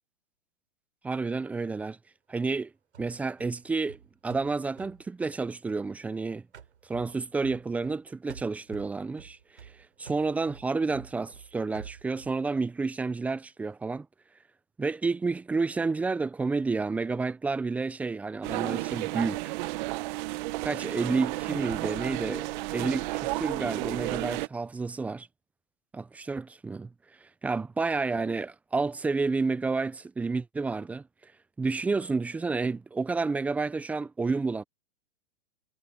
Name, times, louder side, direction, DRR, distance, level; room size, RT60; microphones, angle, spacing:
voice 1, 1.0-2.0 2.3-2.7 3.0-6.4 6.9-9.7 10.0-14.1 14.8-19.6 20.6-22.5 22.7-25.3 25.9-26.9 27.2-31.0 31.6-34.6, right 4 dB, 5° right, 0.4 m, -30 dB
sound 1, 2.9-6.2 6.5-8.0 8.3-12.4, right 7 dB, 90° right, 3.2 m, -50 dB
sound 2, 18.4-24.5, right 21 dB, 45° right, 0.9 m, -32 dB
hypercardioid pair, 125°, 33 cm